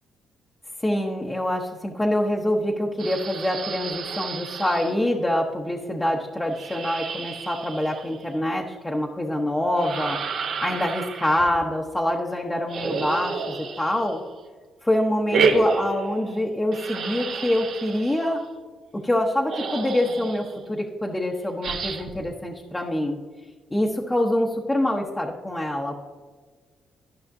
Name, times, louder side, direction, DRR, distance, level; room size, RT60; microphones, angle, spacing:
voice 1, 0.8-14.2 14.8-18.4 18.9-23.2 23.7-26.0, left 1 dB, 15° left, -1 dB, 0.8 m, -25 dB
sound 1, 3.0-4.9 6.5-8.3 9.7-11.6 12.7-14.3 15.3-16.4 16.7-18.3 19.2-19.3 19.5-20.6 21.6-22.2, right 4 dB, 65° right, 1.0 m, -30 dB
12.5 x 5.7 x 2.6 m, 1.5 s
cardioid pair, 90°, 0 cm